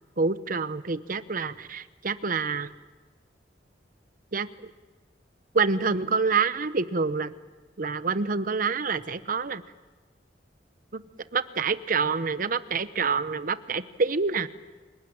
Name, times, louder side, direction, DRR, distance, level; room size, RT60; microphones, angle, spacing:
voice 1, 0.2-2.7 4.3-4.5 5.5-7.3 7.8-9.6 10.9-11.0 11.3-14.5, right 4 dB, 50° right, 13 dB, 0.9 m, -27 dB
29.0 x 19.0 x 8.8 m, 1.3 s
head